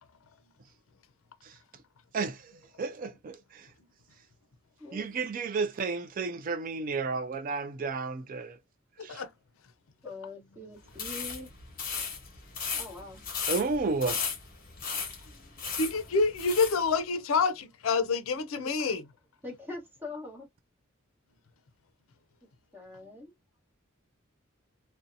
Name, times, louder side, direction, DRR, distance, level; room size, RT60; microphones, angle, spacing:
voice 1, 2.1-2.5 2.8-3.7 4.9-8.6 9.0-9.2 13.5-14.2, right 4 dB, 40° right, 0.3 m, -32 dB
voice 2, 4.8-5.2 10.0-11.5 12.8-13.2 18.6-18.7 19.4-20.5 22.7-23.3, left 2 dB, 10° right, 1.0 m, -43 dB
sound 1, 10.9-16.8, left 6 dB, 45° left, 1.0 m, -36 dB
voice 3, 15.8-19.0, left 4 dB, 80° left, 0.4 m, -27 dB
2.7 x 2.1 x 2.5 m
head